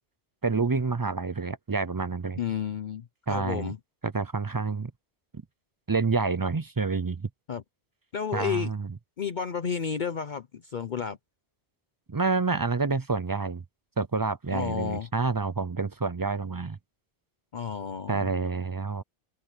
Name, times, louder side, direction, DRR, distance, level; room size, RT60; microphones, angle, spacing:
voice 1, 0.4-2.4 3.3-3.7 4.0-4.9 5.9-7.3 8.3-8.9 12.1-13.6 14.0-16.8 18.1-19.0, right 4 dB, 30° right, 0.4 m, -28 dB
voice 2, 2.4-3.8 7.5-7.6 8.1-8.7 9.2-11.2 14.5-15.1 17.5-18.3, left 7 dB, 50° left, 0.8 m, -31 dB
omnidirectional pair, 1.1 m